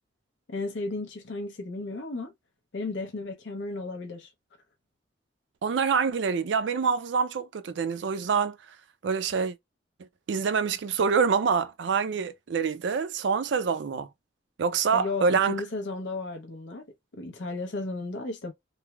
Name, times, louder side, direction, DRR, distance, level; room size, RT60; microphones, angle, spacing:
voice 1, 0.5-2.3 2.7-4.3 14.9-16.8 17.1-18.5, left 3 dB, 75° left, 0.6 m, -34 dB
voice 2, 5.6-8.6 9.0-9.5 10.3-14.1 14.6-15.5, right 5 dB, 70° right, 0.4 m, -26 dB
3.2 x 2.0 x 2.2 m
head